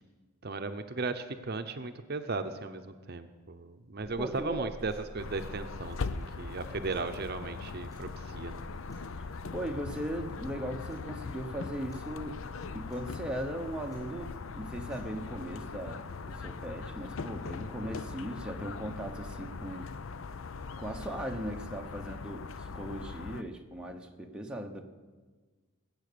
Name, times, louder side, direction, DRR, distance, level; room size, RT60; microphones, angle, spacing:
voice 1, 0.4-8.6, right 3 dB, 45° right, 8 dB, 0.7 m, -36 dB
sound 1, 4.0-15.4, equal, 15° left, 5.8 m, -50 dB
voice 2, 4.1-4.7 9.5-12.4 12.7-19.9 20.8-24.9, right 1 dB, 5° right, 1 dB, 0.9 m, -38 dB
sound 2, 5.2-23.4, left 4 dB, 70° left, 0.6 m, -41 dB
20.5 x 8.3 x 6.9 m, 1.4 s
head